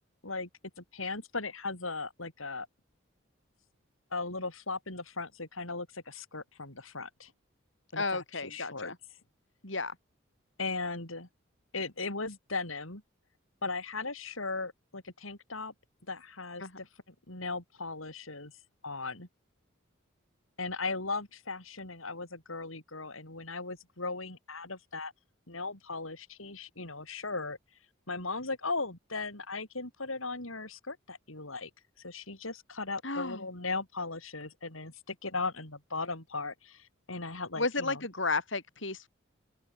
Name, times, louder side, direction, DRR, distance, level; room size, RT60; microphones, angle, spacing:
voice 1, 0.8-2.7 4.1-7.3 7.9-8.9 10.6-11.3 11.7-13.0 13.6-15.7 16.1-18.5 18.8-19.3 20.6-25.1 25.5-27.6 28.1-31.7 32.0-38.0, left 3 dB, 85° left, 6.4 m, -37 dB
voice 2, 7.9-9.0 9.6-9.9 16.6-16.8 33.0-33.4 37.6-39.1, left 3 dB, 65° left, 6.7 m, -33 dB
open air
head